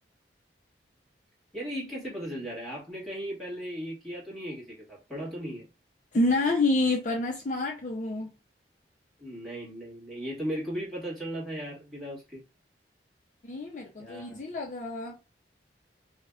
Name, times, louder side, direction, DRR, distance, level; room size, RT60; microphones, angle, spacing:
voice 1, 1.5-5.7 9.2-12.4 14.0-14.4, equal, ahead, 1.8 m, -37 dB
voice 2, 6.1-8.3 13.4-15.2, left 2 dB, 45° left, 0.5 m, -28 dB
4.8 x 2.1 x 2.4 m
head